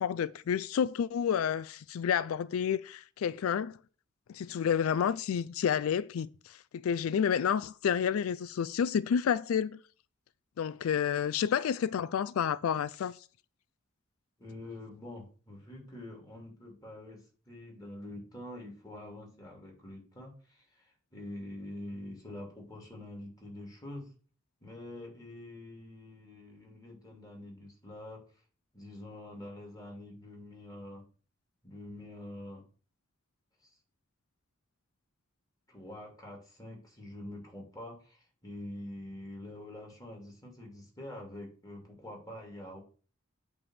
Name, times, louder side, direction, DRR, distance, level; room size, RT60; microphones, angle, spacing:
voice 1, 0.0-3.8 4.3-9.8 10.6-13.2, left 8 dB, 90° left, 0.3 m, -30 dB
voice 2, 14.4-17.2 17.5-24.1 24.6-28.2 28.7-31.0 31.6-32.6 33.6-33.8 35.7-42.8, left 1 dB, 20° left, 2.7 m, -46 dB
8.6 x 3.5 x 6.4 m
head